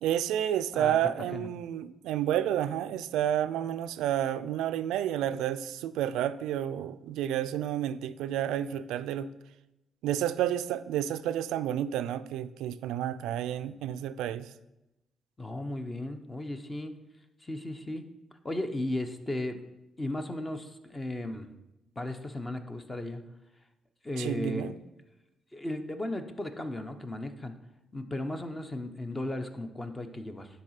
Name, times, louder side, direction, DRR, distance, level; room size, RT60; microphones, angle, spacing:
voice 1, 0.0-9.3 10.0-14.5 24.2-24.8, right 11 dB, 90° right, 13 dB, 0.3 m, -30 dB
voice 2, 15.4-16.9 17.4-18.0 18.4-19.6 20.0-21.5 22.0-23.2 24.0-24.7 25.5-27.5 27.9-30.5, left 1 dB, 20° left, 8 dB, 0.8 m, -35 dB
9.7 x 4.0 x 5.7 m, 0.96 s
cardioid pair, 90°, 0 cm